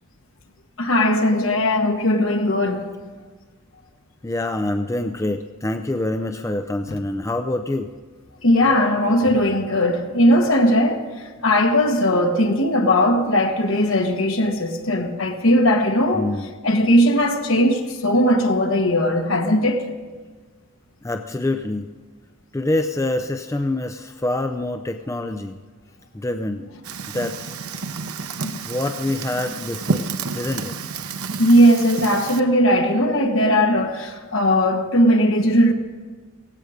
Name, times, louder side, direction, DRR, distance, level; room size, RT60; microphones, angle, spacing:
voice 1, 0.8-2.9 8.4-11.1 11.4-16.3 16.6-19.9 28.4-28.6 31.4-35.7, equal, 65° left, 1.5 m, -18 dB
voice 2, 4.2-7.9 16.1-16.5 21.0-21.9 22.5-25.6 26.1-26.6 27.1-27.4 28.7-30.1 30.3-30.8, left 2 dB, 15° left, 0.4 m, -25 dB
Fire, 26.8-32.4, right 4 dB, 85° right, 0.8 m, -30 dB
17.0 x 16.0 x 5.0 m
head